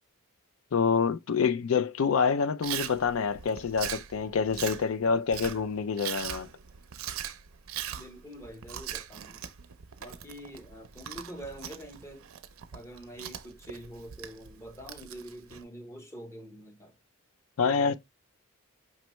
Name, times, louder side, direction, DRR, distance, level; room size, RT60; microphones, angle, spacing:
voice 1, 0.7-6.5 17.6-18.0, left 5 dB, 70° left, 0.4 m, -27 dB
Chewing mastication, 2.6-15.6, right 10 dB, 75° right, 0.5 m, -41 dB
voice 2, 7.9-9.4 10.0-12.3 12.7-17.0 17.6-18.0, equal, 15° left, 0.7 m, -45 dB
5.3 x 3.2 x 3.0 m
head